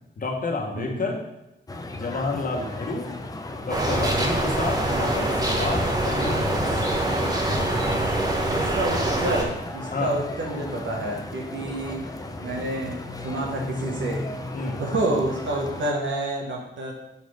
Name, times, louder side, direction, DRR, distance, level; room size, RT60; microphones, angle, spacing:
voice 1, 0.2-1.2 1.9-3.1 3.6-6.7 9.9-10.1 14.5-14.8, left 3 dB, 45° left, 1 dB, 1.2 m, -30 dB
voice 2, 0.8-1.1 8.5-12.1 12.4-14.3 14.8-16.9, right 1 dB, 75° right, -1 dB, 1.2 m, -29 dB
sound 1, 1.7-15.9, left 2 dB, 20° left, 0.6 m, -36 dB
sound 2, 3.7-9.4, right 1 dB, 20° right, 1.0 m, -24 dB
6.8 x 4.3 x 4.9 m, 0.90 s
wide cardioid pair, 155°, 19 cm